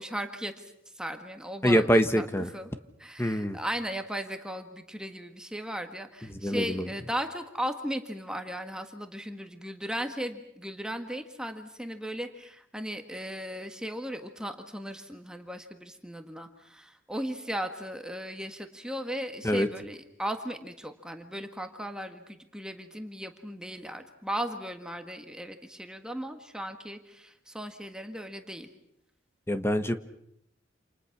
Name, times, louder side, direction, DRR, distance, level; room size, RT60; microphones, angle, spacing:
voice 1, 0.0-2.3 2.5-2.7 3.0-28.7, equal, 5° right, 6 dB, 1.6 m, -37 dB
voice 2, 1.6-2.5 3.2-3.6 6.3-6.9 19.4-19.7 29.5-29.9, equal, 10° left, 9 dB, 1.3 m, -25 dB
28.5 x 28.0 x 6.0 m, 0.74 s
head